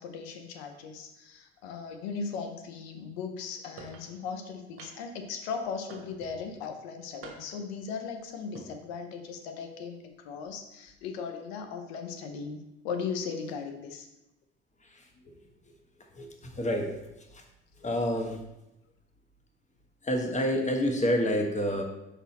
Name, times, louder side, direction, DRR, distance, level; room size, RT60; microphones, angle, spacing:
voice 1, 0.0-14.1, left 5 dB, 80° left, 6 dB, 0.8 m, -38 dB
sound 1, 3.8-4.1 4.8-5.2 5.9-6.4 7.2-7.7 8.4-8.7, right 4 dB, 45° right, 1.2 m, -47 dB
voice 2, 16.5-16.9 17.8-18.4 20.0-21.8, equal, 20° left, 3 dB, 1.2 m, -27 dB
5.4 x 4.2 x 4.1 m, 0.92 s
hypercardioid pair, 65°, 32 cm